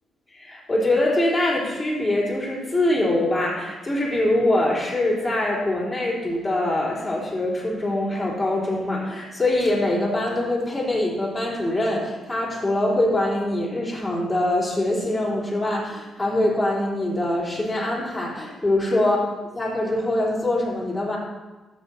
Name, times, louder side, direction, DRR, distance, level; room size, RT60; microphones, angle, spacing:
voice 1, 0.3-19.2 19.6-21.2, left 1 dB, 10° left, -6 dB, 3.9 m, -23 dB
12.5 x 8.1 x 4.3 m, 1.2 s
cardioid pair, 90°, 0 cm